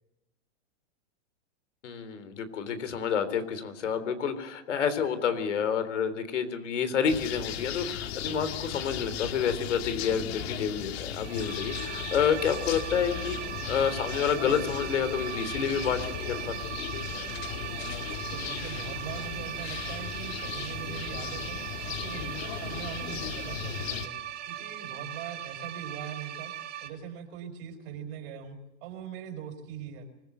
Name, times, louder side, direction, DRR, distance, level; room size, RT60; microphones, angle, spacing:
voice 1, 1.8-13.4 13.7-16.5, left 7 dB, 90° left, 11 dB, 3.7 m, -29 dB
sound 1, 7.1-24.1, left 9 dB, 60° left, 2.2 m, -37 dB
sound 2, 11.2-26.9, right 11 dB, 30° right, 2.4 m, -39 dB
voice 2, 18.3-21.6 21.8-24.2 24.5-26.5 26.8-30.1, right 8 dB, 50° right, 7 dB, 4.9 m, -41 dB
25.0 x 16.0 x 8.0 m, 0.97 s
supercardioid pair, 145°, 35 cm